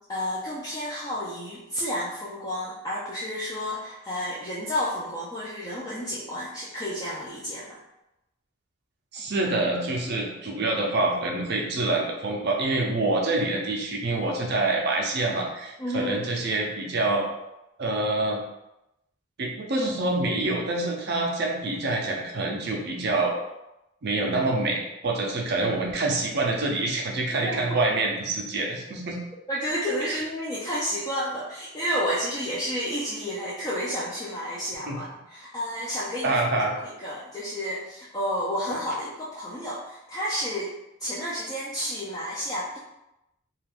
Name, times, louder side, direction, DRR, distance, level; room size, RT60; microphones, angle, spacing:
voice 1, 0.1-7.8 15.8-16.2 27.4-27.6 29.5-36.4 36.8-40.7 41.0-42.8, equal, 15° left, -8 dB, 0.4 m, -31 dB
voice 2, 9.1-17.3 17.8-18.4 19.4-23.4 24.0-29.2 30.0-30.2 34.9-35.0 36.2-36.7, right 2 dB, 50° right, 0 dB, 0.5 m, -26 dB
2.4 x 2.3 x 3.4 m, 0.89 s
head